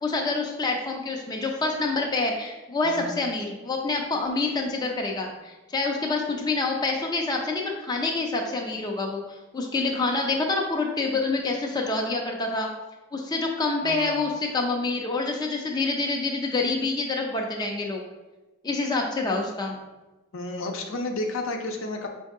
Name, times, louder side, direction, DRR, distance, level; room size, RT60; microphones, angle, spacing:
voice 1, 0.0-12.7 13.1-18.0 18.6-19.8, left 3 dB, 20° left, 0 dB, 0.4 m, -27 dB
voice 2, 13.8-14.2 20.3-22.1, left 2 dB, 65° left, 3 dB, 0.6 m, -31 dB
5.5 x 2.7 x 3.5 m, 1.1 s
head